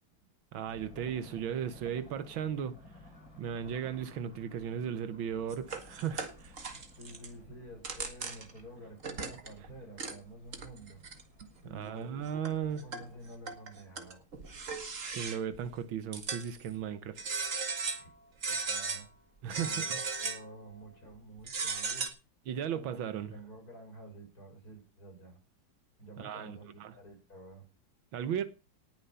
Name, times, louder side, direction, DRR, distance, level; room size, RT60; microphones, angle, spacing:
voice 1, 0.5-2.7 3.4-6.5 11.7-12.8 15.1-17.2 19.4-20.0 22.5-23.3 26.2-26.9 28.1-28.5, right 8 dB, 80° right, 1.8 m, -36 dB
sound 1, 0.7-13.4, left 2 dB, 70° left, 8.6 m, -57 dB
sound 2, 5.5-7.3 7.7-8.6 9.0-9.7 10.0-10.1 10.5-11.5 12.0-12.1 12.4-13.1 13.5-15.6 16.1-16.7 17.2-18.1 18.4-19.0 19.5-20.5 21.4-22.1, right 4 dB, 40° right, 2.0 m, -37 dB
voice 2, 6.7-11.0 11.6-12.2 12.7-14.3 17.9-18.1 18.5-19.1 19.6-22.2 22.7-23.0 23.3-25.4 26.0-27.7, right 1 dB, 45° left, 6.4 m, -50 dB
19.0 x 7.7 x 5.6 m
omnidirectional pair, 2.2 m